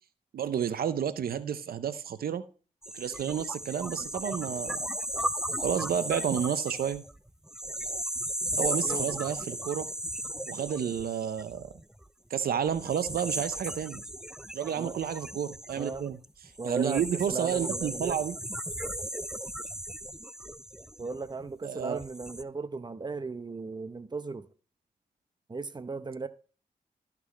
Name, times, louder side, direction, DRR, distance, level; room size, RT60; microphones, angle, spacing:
voice 1, 0.3-2.4 2.9-4.8 5.6-7.0 8.6-9.9 10.5-11.7 12.3-14.0 14.5-16.2 16.6-18.4 21.6-22.0, right 8 dB, 85° right, 0.5 m, -31 dB
sound 1, 2.8-12.0 12.7-21.4 21.9-22.4, right 1 dB, 5° right, 0.3 m, -36 dB
voice 2, 8.6-9.2 14.8-14.9 15.8-16.1 16.6-17.0 17.3-18.2 21.0-24.5 25.5-26.3, right 4 dB, 30° right, 0.7 m, -36 dB
12.5 x 6.0 x 3.0 m
cardioid pair, 60°, 15 cm